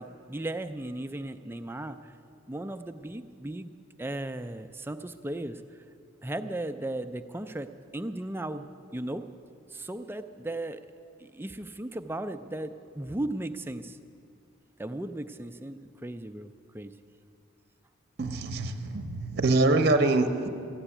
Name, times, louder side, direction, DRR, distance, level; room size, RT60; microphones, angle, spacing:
voice 1, 0.0-2.1 2.5-3.7 4.0-5.6 6.2-8.7 8.9-9.2 9.7-10.8 11.2-14.0 14.8-16.9, right 1 dB, 10° right, 9 dB, 0.4 m, -36 dB
voice 2, 18.2-20.5, right 2 dB, 50° right, 8 dB, 0.8 m, -24 dB
14.5 x 8.1 x 9.9 m, 2.5 s
head